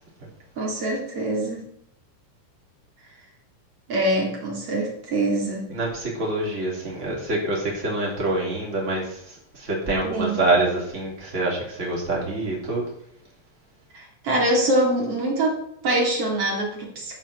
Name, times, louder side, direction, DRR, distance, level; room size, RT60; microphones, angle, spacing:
voice 1, 0.6-1.7 3.9-5.7 10.0-10.4 13.9-17.2, right 1 dB, 40° right, -2 dB, 2.7 m, -24 dB
voice 2, 5.7-12.8, right 2 dB, 20° right, -3 dB, 2.7 m, -26 dB
12.5 x 5.6 x 6.3 m, 0.71 s
omnidirectional pair, 5.6 m